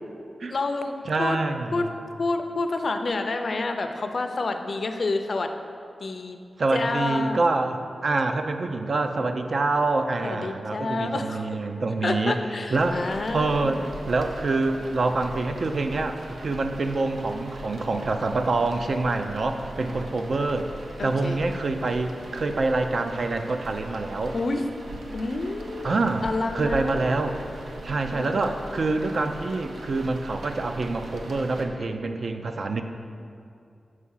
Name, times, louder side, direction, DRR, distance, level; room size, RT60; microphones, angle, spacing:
voice 1, 0.5-1.4 1.7-1.9 2.2-5.5 6.0-6.4 6.7-7.4 10.2-11.5 12.0-13.9 21.0-21.4 24.3-24.6 25.1-25.9 26.2-27.1 28.0-28.4, left 3 dB, 50° left, 6 dB, 0.4 m, -28 dB
voice 2, 1.1-1.9 6.6-12.4 12.7-20.7 21.0-24.4 25.8-27.4 27.8-32.8, right 3 dB, 50° right, 6 dB, 0.4 m, -26 dB
sound 1, 12.7-31.7, right 1 dB, 80° right, 0.8 m, -40 dB
6.6 x 4.8 x 5.6 m, 2.4 s
wide cardioid pair, 150°, 0 cm